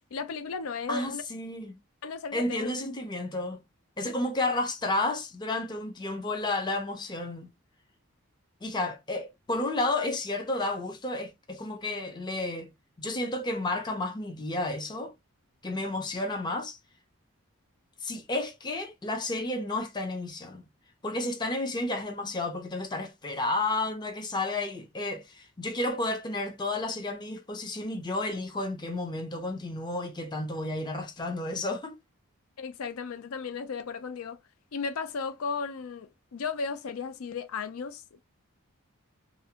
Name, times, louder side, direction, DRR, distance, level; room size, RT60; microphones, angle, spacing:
voice 1, 0.1-1.2 2.0-2.7 4.0-4.1 32.6-34.4 34.7-38.2, left 5 dB, 80° left, 0.4 m, -35 dB
voice 2, 0.9-1.7 2.3-3.6 4.0-7.5 8.6-12.7 13.0-15.1 15.6-16.8 18.0-20.6 21.0-32.0, left 2 dB, 20° left, 0.4 m, -31 dB
2.6 x 2.1 x 2.7 m
head